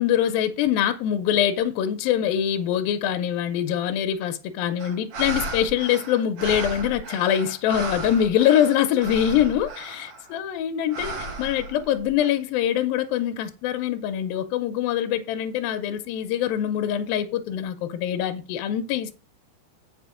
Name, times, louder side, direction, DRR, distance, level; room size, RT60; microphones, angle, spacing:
voice 1, 0.0-19.1, left 10 dB, 80° left, 2.1 m, -24 dB
sound 1, 4.8-10.3 10.9-12.3, right 2 dB, 65° right, 1.5 m, -34 dB
8.1 x 5.9 x 4.9 m
omnidirectional pair, 5.0 m